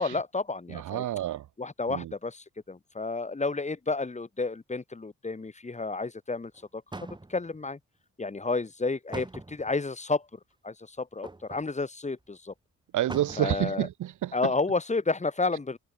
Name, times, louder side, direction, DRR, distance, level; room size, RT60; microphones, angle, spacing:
voice 1, 0.0-1.0 1.6-6.8 7.3-7.8 8.2-10.3 10.6-12.5 13.4-13.9 14.3-15.8, left 3 dB, 25° left, 5.8 m, -31 dB
voice 2, 0.7-1.5 1.9-2.1 12.9-14.5, right 13 dB, 80° right, 5.7 m, -29 dB
sound 1, 6.5-6.6 6.9-7.6 9.1-9.8 11.2-11.7 12.2-12.3 12.5-12.6 13.1-13.6 14.0-14.1, right 2 dB, 15° right, 5.3 m, -42 dB
cardioid pair, 90°, 30 cm